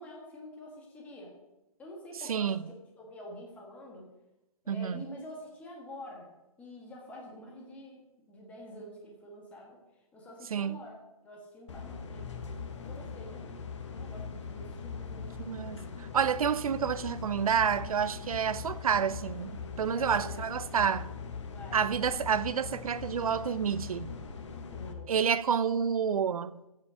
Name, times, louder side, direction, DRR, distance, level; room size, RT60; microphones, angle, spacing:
voice 1, 0.0-1.3 1.8-2.6 3.0-4.1 4.6-6.3 6.6-8.0 8.3-9.8 10.1-12.6 12.8-13.4 13.9-15.5 19.8-20.9 21.5-21.8 24.7-25.1, left 1 dB, 5° left, 1.6 m, -47 dB
voice 2, 2.3-2.6 4.7-5.0 10.5-10.8 15.5-19.5 19.8-21.1 21.7-24.1 25.1-26.6, right 7 dB, 70° right, 0.6 m, -29 dB
sound 1, 11.7-24.9, left 5 dB, 50° left, 1.3 m, -41 dB
15.0 x 5.7 x 5.0 m
hypercardioid pair, 165°, 19 cm